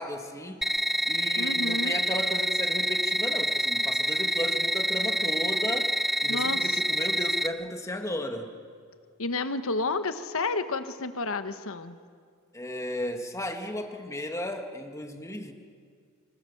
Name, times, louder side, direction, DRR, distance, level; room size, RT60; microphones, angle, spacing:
voice 1, 0.0-8.5 12.5-15.5, left 1 dB, 15° left, 4 dB, 1.9 m, -35 dB
sound 1, 0.6-7.5, equal, ahead, 0.6 m, -27 dB
voice 2, 1.4-2.0 6.3-6.8 9.2-12.0, left 3 dB, 65° left, 9 dB, 1.3 m, -31 dB
26.0 x 25.0 x 7.2 m, 2.1 s
head